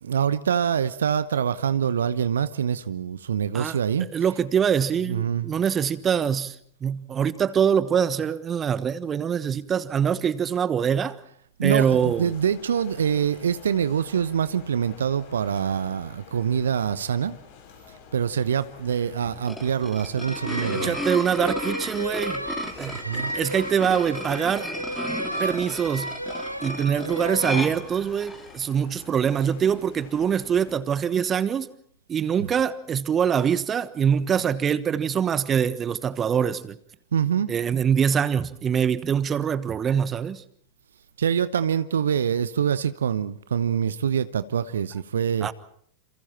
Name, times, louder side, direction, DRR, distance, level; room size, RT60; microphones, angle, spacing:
voice 1, 0.0-4.1 5.1-5.5 11.6-17.4 18.1-21.0 22.9-23.3 37.1-37.5 41.2-45.5, right 8 dB, 65° right, 0.9 m, -25 dB
voice 2, 4.1-6.5 6.8-11.2 11.6-12.2 20.6-22.4 22.8-24.7 25.1-26.2 26.6-31.7 32.1-36.8 37.5-40.4 45.4-45.5, right 8 dB, 25° right, 1.2 m, -24 dB
sound 1, 11.8-30.7, left 6 dB, 55° left, 5.9 m, -49 dB
sound 2, 19.3-28.6, left 1 dB, 5° left, 3.1 m, -35 dB
sound 3, 20.2-27.7, right 1 dB, 90° right, 0.9 m, -33 dB
28.5 x 28.0 x 4.4 m
figure-of-eight pair, 90°, 0 cm